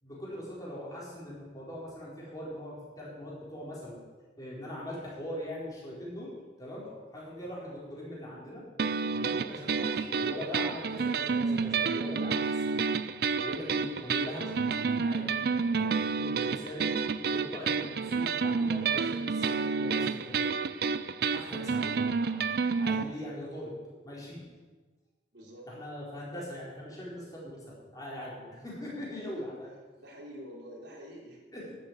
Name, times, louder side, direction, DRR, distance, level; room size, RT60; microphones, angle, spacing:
voice 1, 0.0-4.0 4.4-6.3 6.6-6.8 7.1-8.6 9.1-12.9 13.4-16.9 17.3-20.5 21.3-22.4 22.8-23.7 24.0-24.5 25.7-29.7 31.5-31.8, left 1 dB, 20° left, -6 dB, 4.4 m, -41 dB
sound 1, 8.8-23.0, right 5 dB, 60° right, 0.5 m, -30 dB
voice 2, 22.9-23.2 25.3-25.7 29.3-29.5 30.0-31.4, equal, 75° right, -2 dB, 3.6 m, -47 dB
11.5 x 8.3 x 8.2 m, 1.4 s
head